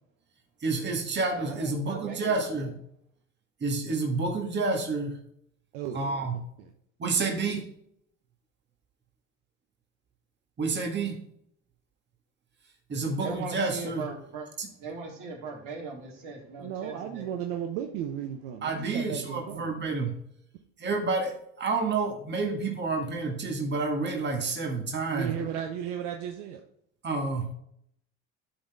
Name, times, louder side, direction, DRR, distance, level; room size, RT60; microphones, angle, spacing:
voice 1, 0.6-2.8 3.6-5.2 5.9-6.4 7.0-7.6 10.6-11.2 12.9-14.1 14.6-14.7 18.6-20.2 20.8-25.4 27.0-27.5, right 3 dB, 30° right, 2 dB, 1.6 m, -29 dB
voice 2, 1.3-2.3 13.2-14.5 14.8-17.3, right 4 dB, 60° right, -2 dB, 3.2 m, -39 dB
voice 3, 5.7-6.1 6.6-6.7 7.1-7.3 16.6-19.7 25.1-26.6, right 9 dB, 80° right, 3 dB, 0.9 m, -35 dB
11.5 x 4.1 x 3.5 m, 0.72 s
supercardioid pair, 85°, 35 cm